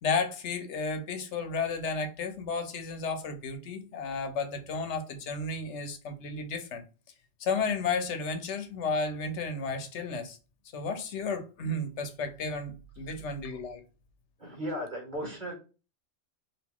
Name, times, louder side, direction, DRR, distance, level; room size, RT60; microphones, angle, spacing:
voice 1, 0.0-6.8 7.4-10.4 10.7-13.8, left 4 dB, 75° left, 1.0 m, -33 dB
voice 2, 14.4-15.5, equal, 40° right, 1.6 m, -36 dB
2.9 x 2.7 x 3.6 m
omnidirectional pair, 1.2 m